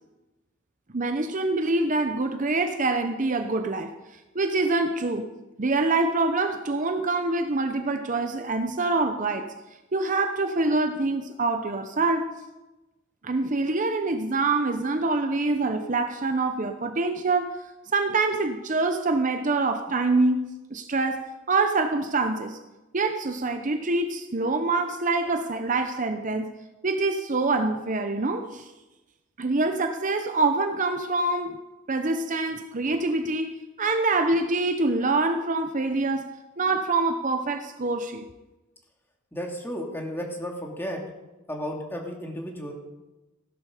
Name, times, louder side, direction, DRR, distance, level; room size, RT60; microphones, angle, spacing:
voice 1, 0.9-3.9 4.3-5.3 5.6-9.5 9.9-12.3 13.2-17.6 17.9-22.6 22.9-26.5 26.8-28.7 29.4-31.6 31.9-38.2, right 3 dB, 40° right, 0.8 m, -25 dB
voice 2, 39.3-41.0 41.5-42.7, equal, 10° left, 2.4 m, -33 dB
16.5 x 12.0 x 5.0 m
head